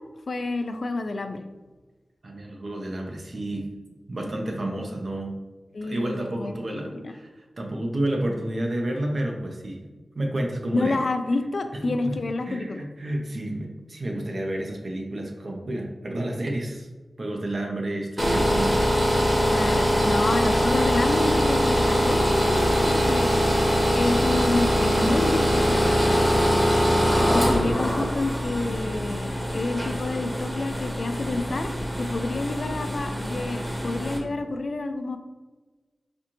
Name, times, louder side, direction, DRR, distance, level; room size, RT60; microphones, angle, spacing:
voice 1, 0.3-1.4 5.7-7.1 10.7-12.8 19.5-23.3 23.9-25.9 27.2-31.7 32.0-35.2, left 2 dB, 65° left, 7 dB, 0.3 m, -29 dB
voice 2, 2.2-3.7 4.1-5.4 5.8-7.3 7.6-9.8 10.2-10.9 11.8-12.1 12.5-16.9 17.2-18.9 20.1-20.2, right 1 dB, 60° right, 1 dB, 0.7 m, -30 dB
sound 1, 18.2-34.2, equal, 10° right, 0.9 m, -23 dB
4.3 x 2.5 x 2.9 m, 1.3 s
cardioid pair, 45°, 0 cm